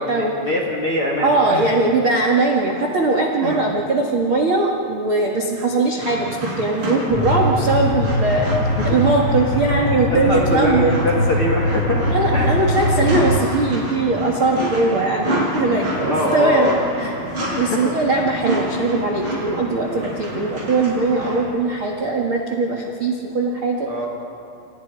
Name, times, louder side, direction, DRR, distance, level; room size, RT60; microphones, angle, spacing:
voice 1, 0.0-1.7 3.4-3.6 8.8-9.0 10.1-12.0 12.3-12.5 16.1-16.8 17.4-17.9 23.9-24.1, left 1 dB, 55° left, 0 dB, 1.5 m, -23 dB
voice 2, 1.2-11.2 12.0-17.1 17.6-23.9, right 3 dB, 75° right, 0 dB, 1.2 m, -20 dB
sound 1, 6.0-21.4, right 1 dB, 25° right, 6.3 m, -29 dB
sound 2, 7.1-13.4, left 1 dB, 85° left, 4.6 m, -22 dB
29.5 x 28.0 x 4.9 m, 2.8 s
omnidirectional pair, 5.9 m